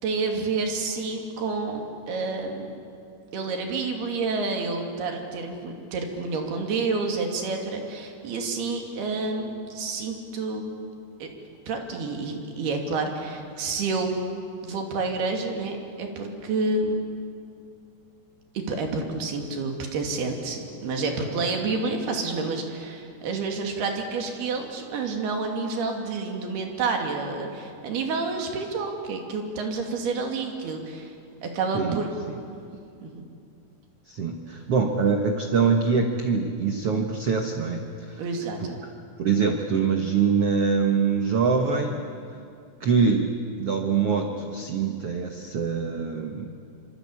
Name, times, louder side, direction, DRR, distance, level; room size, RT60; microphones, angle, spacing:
voice 1, 0.0-2.7 3.3-10.6 11.2-11.3 11.7-14.2 14.6-17.0 18.5-31.1 31.4-32.1 33.0-33.2 38.2-38.8, right 3 dB, 65° right, 3 dB, 4.4 m, -29 dB
voice 2, 34.1-38.2 39.2-42.0 42.8-46.5, right 5 dB, 90° right, 4 dB, 1.3 m, -24 dB
26.5 x 25.5 x 8.5 m, 2.4 s
omnidirectional pair, 4.9 m